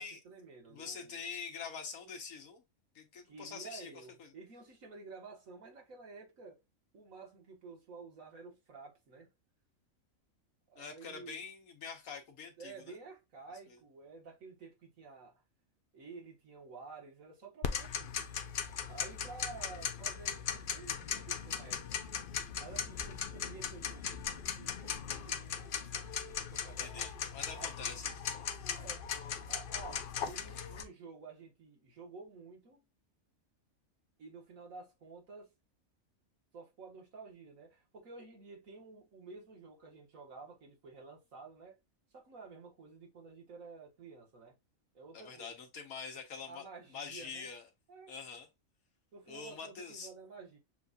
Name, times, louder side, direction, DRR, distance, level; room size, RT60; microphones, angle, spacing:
voice 1, 0.0-1.3 3.3-6.6 6.9-9.3 10.7-11.4 12.6-15.4 15.9-18.3 18.9-22.0 22.6-25.7 26.2-27.9 28.7-29.0 29.5-32.8 34.2-35.5 36.5-41.8 42.1-44.6 44.9-45.5 46.5-47.5 47.9-48.1 49.1-50.6, right 4 dB, 70° right, 1.8 m, -51 dB
voice 2, 0.7-2.6 2.9-4.3 10.8-13.0 13.7-13.8 26.8-28.1 45.1-46.6 46.9-47.7 48.1-48.5 49.3-50.1, left 5 dB, 90° left, 1.5 m, -45 dB
Tick-tock, 17.6-30.8, left 7 dB, 60° left, 0.6 m, -38 dB
6.9 x 2.4 x 2.6 m
omnidirectional pair, 1.4 m